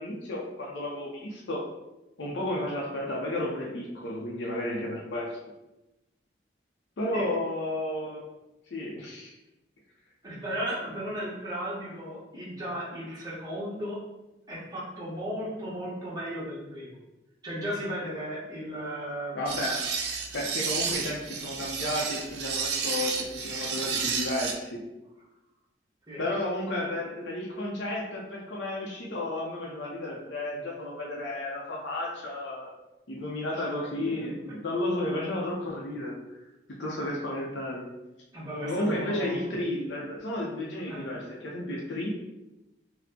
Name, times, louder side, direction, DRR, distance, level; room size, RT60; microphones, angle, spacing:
voice 1, 0.0-1.7 2.2-5.4 7.0-8.2 8.7-9.3 19.3-19.9 20.3-24.8 26.2-32.7 33.1-36.2 36.7-37.9 38.6-42.1, left 1 dB, 85° left, -2 dB, 0.6 m, -32 dB
voice 2, 10.2-14.0 14.5-17.0 17.4-19.5 26.1-26.2 33.5-33.6 34.0-34.3 38.3-39.5 40.9-41.1, equal, 20° right, -7 dB, 1.0 m, -35 dB
sound 1, 19.5-24.5, right 5 dB, 70° right, 0.4 m, -31 dB
4.1 x 2.1 x 2.8 m, 0.97 s
head